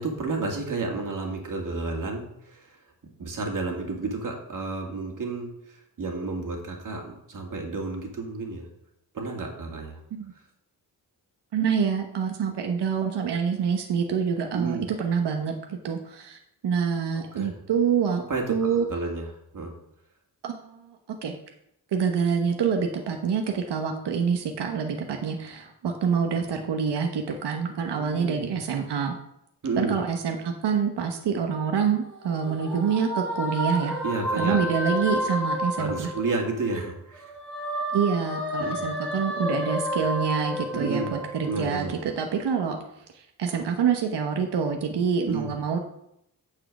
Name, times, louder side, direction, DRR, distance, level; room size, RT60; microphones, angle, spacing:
voice 1, 0.0-2.7 3.2-8.7 9.1-10.0 14.5-14.9 17.4-17.5 18.3-19.3 19.5-19.7 27.9-28.6 29.6-30.0 34.0-34.6 35.8-37.3 38.6-38.9 40.7-41.2 41.5-41.9 45.3-45.5, right 3 dB, 50° right, 1 dB, 2.4 m, -31 dB
voice 2, 11.5-18.2 18.5-18.8 20.4-21.0 21.2-21.3 21.9-29.1 29.8-34.0 34.4-36.1 37.9-42.8 43.1-45.8, right 6 dB, 85° right, 4 dB, 1.1 m, -26 dB
sound 1, 32.0-36.8 37.1-41.9, equal, 5° left, 4.1 m, -31 dB
9.0 x 4.9 x 7.5 m, 0.78 s
wide cardioid pair, 115°, 40 cm